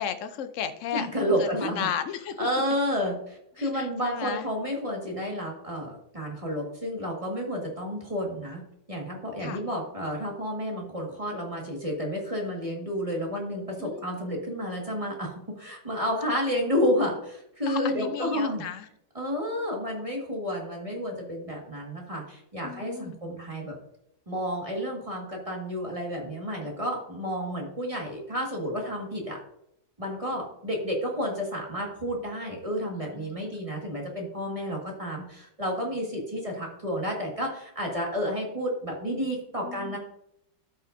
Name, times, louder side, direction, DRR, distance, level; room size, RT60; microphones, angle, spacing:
voice 1, 0.0-1.1 1.4-2.5 3.6-4.4 9.4-9.6 13.8-14.2 17.7-18.9 22.6-23.2 32.9-33.6 39.6-40.0, left 8 dB, 75° left, 9 dB, 0.7 m, -34 dB
voice 2, 0.9-1.9 2.4-8.6 8.9-18.6 19.1-23.7 24.3-29.4 30.0-40.0, equal, 20° right, -1 dB, 1.6 m, -31 dB
13.0 x 5.5 x 2.6 m, 0.78 s
omnidirectional pair, 2.0 m